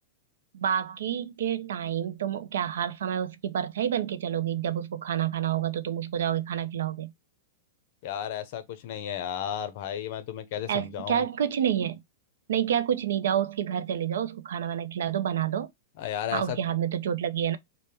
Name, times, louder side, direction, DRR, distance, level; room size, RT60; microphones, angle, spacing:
voice 1, 0.5-7.1 10.7-12.0 12.5-15.7 16.3-17.6, right 9 dB, 80° right, 0.5 m, -28 dB
voice 2, 8.0-11.3 16.0-16.6, left 10 dB, 45° left, 0.6 m, -33 dB
3.3 x 2.1 x 4.2 m
supercardioid pair, 165°, 0 cm